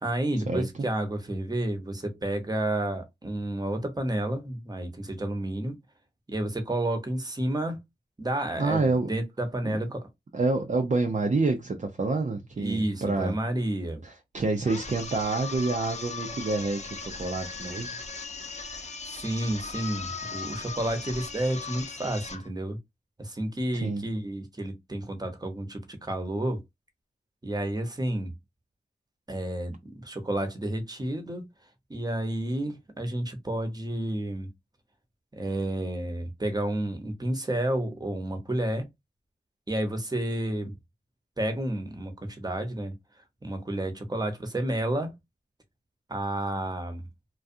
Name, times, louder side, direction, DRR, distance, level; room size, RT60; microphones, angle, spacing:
voice 1, 0.0-5.8 6.3-7.8 8.2-10.0 12.6-14.0 19.0-22.8 23.2-26.6 27.4-28.3 29.3-31.5 31.9-34.5 35.3-38.9 39.7-40.7 41.4-43.0 43.4-45.1 46.1-47.1, right 1 dB, 25° right, 0.9 m, -30 dB
voice 2, 8.6-9.1 9.6-9.8 10.3-13.4 14.0-18.0 18.4-18.5 23.8-24.0, right 3 dB, 45° right, 0.6 m, -28 dB
sound 1, 14.6-22.5, left 4 dB, 40° left, 0.8 m, -38 dB
2.4 x 2.3 x 2.6 m
cardioid pair, 45°, 17 cm